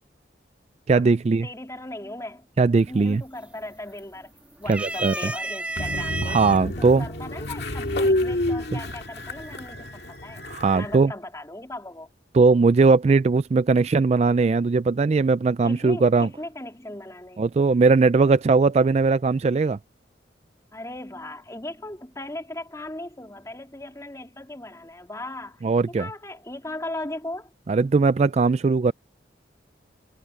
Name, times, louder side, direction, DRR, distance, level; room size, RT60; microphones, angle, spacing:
voice 1, 0.9-1.5 2.6-3.2 4.7-5.3 6.2-7.1 10.5-11.1 12.3-16.3 17.4-19.8 25.6-26.1 27.7-28.9, right 4 dB, 35° right, 0.3 m, -19 dB
voice 2, 1.4-2.5 2.9-4.3 4.6-6.4 6.6-10.4 10.7-12.1 15.6-17.5 20.7-27.5, left 1 dB, 15° left, 3.3 m, -38 dB
sound 1, 2.8-3.2 3.5-4.2 4.6-6.6 7.4-7.5 8.8-9.2, right 2 dB, 5° right, 2.4 m, -31 dB
Train, 5.8-11.0, left 1 dB, 60° left, 2.2 m, -29 dB
head